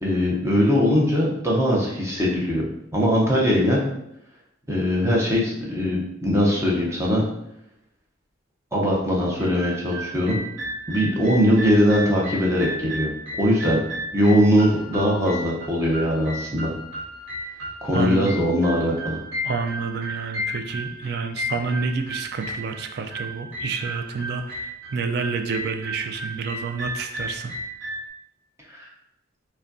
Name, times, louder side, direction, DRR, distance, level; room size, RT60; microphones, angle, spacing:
voice 1, 0.0-2.6 2.9-3.9 4.7-7.2 8.7-10.4 10.9-13.1 13.4-13.8 14.1-16.7 17.8-19.2 28.7-28.9, equal, 15° right, -4 dB, 0.6 m, -21 dB
sound 1, 9.4-28.1, equal, 80° right, 1.1 m, -34 dB
voice 2, 17.9-18.4 19.4-27.5, right 4 dB, 50° right, 7 dB, 0.3 m, -29 dB
5.0 x 2.2 x 2.5 m, 0.81 s
head